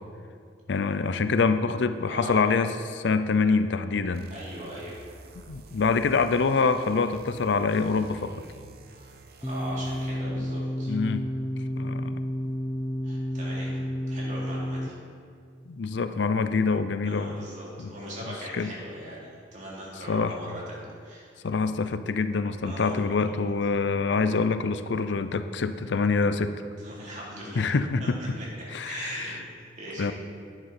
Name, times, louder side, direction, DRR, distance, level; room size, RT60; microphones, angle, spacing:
voice 1, 0.7-4.3 5.5-8.3 10.9-11.3 11.8-12.1 15.7-17.4 17.8-17.9 18.5-18.7 20.1-20.3 21.4-26.6 27.6-28.2 28.7-29.4 30.0-30.1, left 4 dB, 70° left, 10 dB, 0.5 m, -25 dB
voice 2, 2.1-2.5 4.3-5.1 8.9-10.9 13.0-13.8 14.1-14.9 17.0-21.3 22.6-23.2 26.8-27.7 28.0-28.5 28.8-30.1, right 1 dB, 40° right, -6 dB, 3.3 m, -39 dB
sound 1, 4.1-10.4, right 2 dB, 55° right, 0.9 m, -49 dB
sound 2, 9.4-14.9, equal, 5° left, 0.4 m, -31 dB
10.5 x 10.5 x 4.3 m, 2.2 s
head